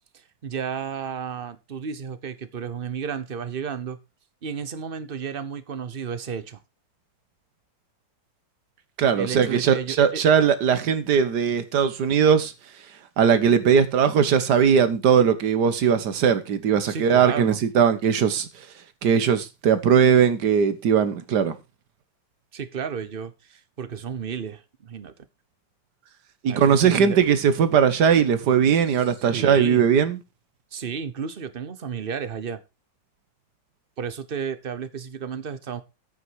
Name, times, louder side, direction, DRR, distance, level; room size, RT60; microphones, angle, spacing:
voice 1, 0.4-4.0 4.4-6.6 9.2-10.2 16.8-17.6 22.5-25.1 26.5-27.2 28.9-29.0 29.3-29.8 30.7-32.6 34.0-35.8, right 7 dB, 40° right, 0.9 m, -32 dB
voice 2, 9.0-12.5 13.2-18.5 19.0-21.6 26.4-30.2, right 7 dB, 65° right, 1.6 m, -19 dB
9.6 x 8.8 x 4.7 m
omnidirectional pair, 2.0 m